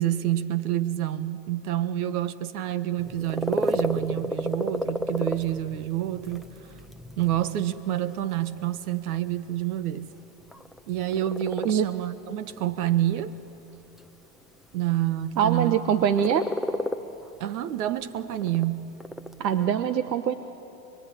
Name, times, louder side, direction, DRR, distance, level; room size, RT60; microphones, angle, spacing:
voice 1, 0.0-6.5 7.2-10.1 10.9-13.3 14.7-16.0 17.4-18.8, right 13 dB, 60° right, 13 dB, 1.3 m, -28 dB
sound 1, 3.0-19.6, equal, ahead, 0.6 m, -34 dB
voice 2, 15.4-16.4 19.4-20.4, right 8 dB, 85° right, 10 dB, 1.2 m, -23 dB
28.0 x 21.0 x 9.9 m, 3.0 s
hypercardioid pair, 115°, 50 cm